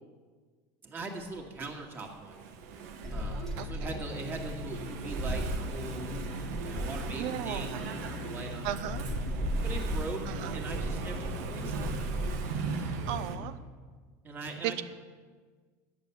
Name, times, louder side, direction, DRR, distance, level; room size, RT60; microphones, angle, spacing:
voice 1, 0.8-2.4 3.1-6.1 6.6-9.1 9.6-11.9 14.2-14.8, right 3 dB, 25° right, 1 dB, 1.9 m, -41 dB
Engine / Mechanisms, 1.2-13.3, right 5 dB, 80° right, 1.4 m, -39 dB
sound 1, 3.0-13.8, left 7 dB, 80° left, 0.9 m, -43 dB
sound 2, 3.0-8.1 8.6-12.4, right 1 dB, ahead, 1.6 m, -36 dB
voice 2, 3.6-4.0 7.2-7.8 8.6-9.1 10.3-10.6 11.6-11.9 13.1-13.6 14.6-14.8, right 12 dB, 65° right, 13 dB, 0.6 m, -36 dB
10.5 x 6.8 x 8.2 m, 1.5 s
supercardioid pair, 135°, 9 cm